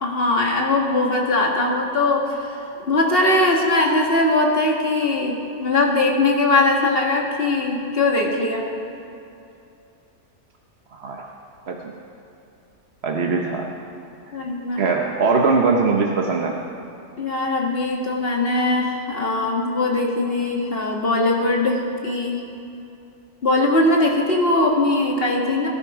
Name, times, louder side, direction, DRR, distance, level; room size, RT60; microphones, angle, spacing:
voice 1, 0.0-2.6 2.9-8.6 14.3-14.8 17.2-22.4 23.4-25.7, left 2 dB, 45° left, 0 dB, 2.0 m, -20 dB
voice 2, 10.9-11.2 11.7-11.9 13.0-13.7 14.8-16.6, right 4 dB, 55° right, 0 dB, 1.1 m, -21 dB
21.0 x 11.0 x 4.8 m, 2.7 s
omnidirectional pair, 1.4 m